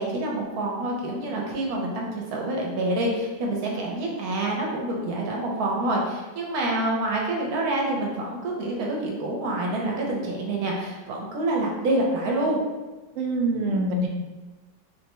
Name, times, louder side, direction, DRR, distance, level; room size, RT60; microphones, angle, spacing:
voice 1, 0.0-12.6, right 1 dB, 65° right, -2 dB, 1.1 m, -27 dB
voice 2, 13.2-14.1, right 1 dB, 85° right, 0 dB, 0.6 m, -24 dB
4.0 x 2.2 x 3.0 m, 1.2 s
omnidirectional pair, 1.9 m